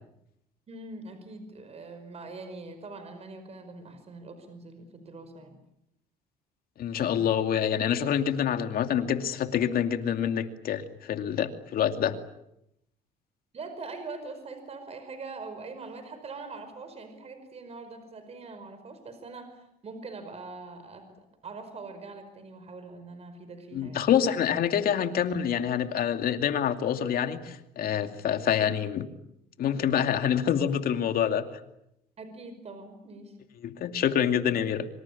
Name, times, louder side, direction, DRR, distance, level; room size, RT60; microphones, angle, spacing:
voice 1, 0.7-5.6 13.5-24.1 32.2-33.4, right 3 dB, 40° right, 9 dB, 5.2 m, -43 dB
voice 2, 6.8-12.2 23.7-29.1 29.6-31.5 33.6-34.9, left 9 dB, 60° left, 7 dB, 2.5 m, -26 dB
26.0 x 25.5 x 8.6 m, 0.82 s
cardioid pair, 110°, 17 cm